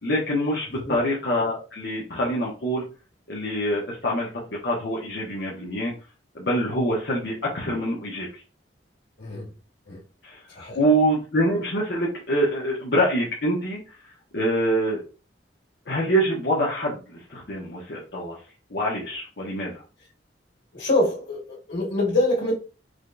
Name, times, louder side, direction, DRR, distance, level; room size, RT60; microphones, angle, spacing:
voice 1, 0.0-2.8 3.3-4.3 4.6-5.9 6.3-8.4 10.2-14.0 14.3-15.0 15.9-18.4 18.7-19.8, equal, 65° left, 0.9 m, -25 dB
voice 2, 9.2-9.5 9.9-10.0 10.5-10.8 20.7-22.5, left 1 dB, 80° left, 1.8 m, -25 dB
4.9 x 2.3 x 2.5 m
head